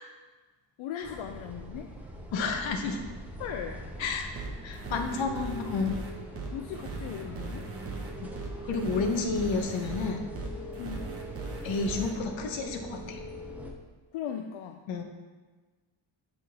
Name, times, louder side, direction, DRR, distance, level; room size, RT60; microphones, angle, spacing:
voice 1, 0.8-1.9 3.4-3.8 6.5-7.7 10.8-11.2 14.1-14.8, left 8 dB, 80° left, 4 dB, 0.6 m, -38 dB
sound 1, 1.0-13.7, equal, 5° right, 0.5 m, -42 dB
voice 2, 2.3-3.0 4.0-6.0 8.2-8.3 8.7-10.3 11.6-13.2 14.9-15.0, left 4 dB, 65° left, 4 dB, 1.0 m, -31 dB
sound 2, 4.4-12.1, right 4 dB, 30° right, 0.9 m, -39 dB
8.7 x 3.8 x 4.2 m, 1.3 s
cardioid pair, 160°, 49 cm